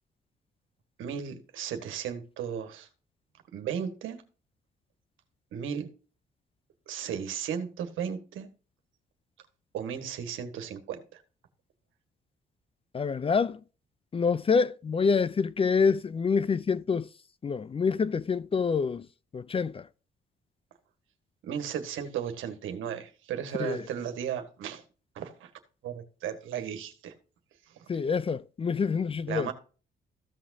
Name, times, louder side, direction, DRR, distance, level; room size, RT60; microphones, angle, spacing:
voice 1, 1.0-2.9 3.5-4.2 5.5-5.9 6.9-8.5 9.7-11.2 21.4-24.8 25.2-25.5 25.8-27.1 27.8-27.9 29.3-29.5, right 8 dB, 80° right, 1.6 m, -35 dB
voice 2, 12.9-13.6 14.1-17.1 17.4-19.1 19.3-19.9 23.6-23.8 27.9-29.5, left 5 dB, 30° left, 0.4 m, -26 dB
14.5 x 6.1 x 2.7 m
cardioid pair, 90°, 20 cm